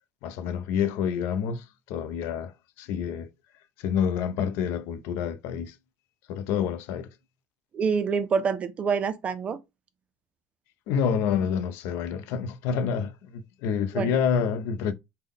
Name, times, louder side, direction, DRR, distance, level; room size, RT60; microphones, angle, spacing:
voice 1, 0.2-3.3 3.8-5.8 6.3-7.1 10.9-14.9, left 7 dB, 70° left, 0.5 m, -28 dB
voice 2, 7.7-9.6 13.9-14.2, right 6 dB, 30° right, 0.4 m, -26 dB
3.6 x 2.1 x 3.5 m
cardioid pair, 135°, 4 cm